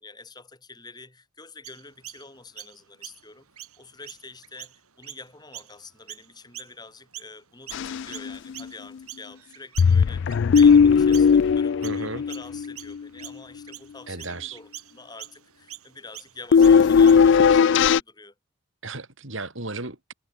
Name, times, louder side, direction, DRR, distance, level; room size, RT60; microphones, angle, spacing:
voice 1, 0.0-3.5 3.8-18.3, left 3 dB, 20° left, 2.9 m, -46 dB
Chirp tweet, 1.6-7.4 7.7-17.4, right 14 dB, 90° right, 3.2 m, -44 dB
sound 1, 7.7-8.4 8.6-8.7 9.8-12.9 16.5-18.0, left 6 dB, 55° left, 0.3 m, -17 dB
voice 2, 11.8-12.2 14.1-14.6 18.8-20.1, right 3 dB, 60° right, 3.2 m, -34 dB
head